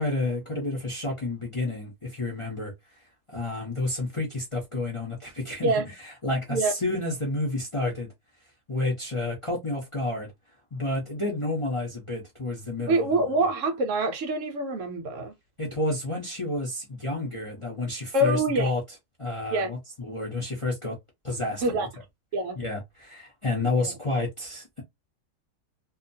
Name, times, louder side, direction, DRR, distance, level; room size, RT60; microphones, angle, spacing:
voice 1, 0.0-2.7 3.3-5.7 6.0-8.1 8.7-10.3 10.7-13.3 15.6-18.8 19.2-21.0 21.2-21.9 22.6-24.8, left 2 dB, 40° left, 0.4 m, -30 dB
voice 2, 12.9-15.3 18.1-18.7 19.5-19.7 21.6-21.9 22.3-22.6 23.8-23.9, right 2 dB, 65° right, 0.8 m, -25 dB
2.8 x 2.2 x 2.6 m
omnidirectional pair, 1.8 m